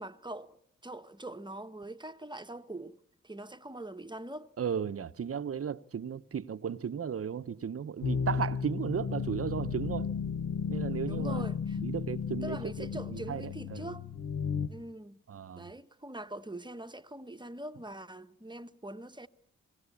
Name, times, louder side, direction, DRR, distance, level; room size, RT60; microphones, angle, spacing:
voice 1, 0.0-3.0 3.2-4.5 11.1-11.8 12.4-14.1 14.6-15.2 15.5-19.3, right 1 dB, 15° right, 1.2 m, -43 dB
voice 2, 4.6-10.1 10.7-11.5 11.8-13.9 15.3-15.7, right 7 dB, 50° right, 0.9 m, -35 dB
sound 1, 8.0-14.7, left 6 dB, 70° left, 1.5 m, -34 dB
26.5 x 18.0 x 8.5 m
cardioid pair, 60°, 29 cm